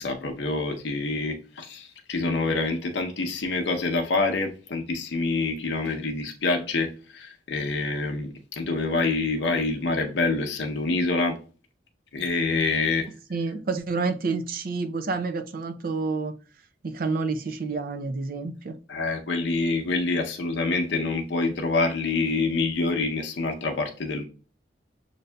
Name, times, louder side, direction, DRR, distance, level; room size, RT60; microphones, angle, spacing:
voice 1, 0.0-11.4 12.1-13.1 18.9-24.2, left 3 dB, 85° left, 0.6 m, -26 dB
voice 2, 13.3-16.3 16.8-18.7, right 4 dB, 55° right, 0.5 m, -29 dB
6.5 x 2.6 x 2.2 m
head